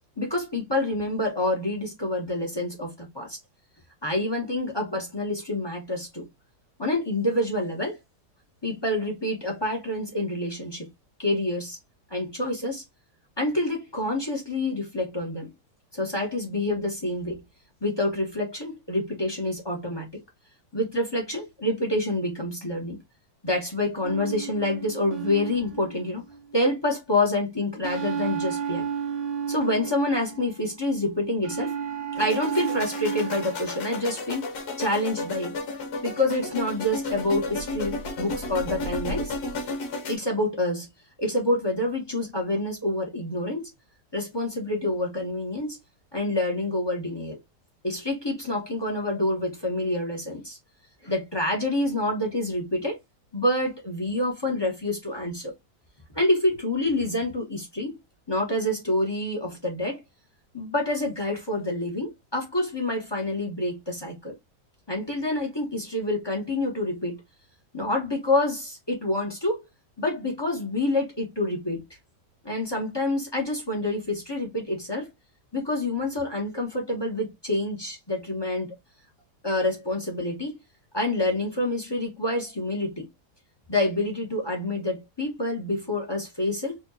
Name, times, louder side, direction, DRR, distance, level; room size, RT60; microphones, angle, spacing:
voice 1, 0.2-3.4 4.0-6.3 6.8-8.0 8.6-10.9 11.2-11.8 12.1-12.8 13.4-15.5 15.9-17.4 17.8-20.1 20.7-23.0 23.4-26.2 26.5-28.8 29.5-31.8 32.1-34.4 34.8-35.6 36.0-39.4 40.1-40.9 41.2-43.7 44.1-45.8 46.1-47.4 47.8-50.6 51.0-53.0 53.3-55.5 56.1-58.0 58.3-60.0 60.5-64.3 64.9-67.2 67.7-69.6 70.0-71.8 72.4-75.1 75.5-78.8 79.4-80.6 80.9-83.1 83.7-86.8, left 1 dB, 20° left, 1.0 m, -27 dB
sound 1, 24.0-26.5 27.8-30.7 31.4-34.0, right 7 dB, 50° right, 0.8 m, -32 dB
sound 2, 32.2-40.2, left 2 dB, 70° left, 1.6 m, -33 dB
4.7 x 2.5 x 2.7 m
omnidirectional pair, 1.8 m